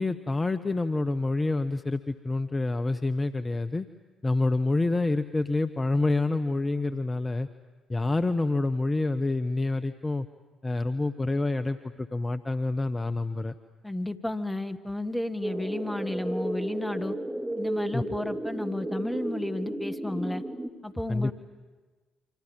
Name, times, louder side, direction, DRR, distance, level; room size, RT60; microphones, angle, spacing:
voice 1, 0.0-3.9 4.2-7.5 7.9-10.3 10.6-13.5 17.9-18.0 21.1-21.3, left 2 dB, 25° left, 9 dB, 1.1 m, -27 dB
voice 2, 13.8-17.2 17.6-20.4 20.8-21.3, left 1 dB, 5° left, 7 dB, 1.8 m, -32 dB
sound 1, 15.4-20.7, right 1 dB, 10° right, 3.3 m, -33 dB
28.5 x 25.5 x 7.4 m, 1.3 s
hypercardioid pair, 45°, 0 cm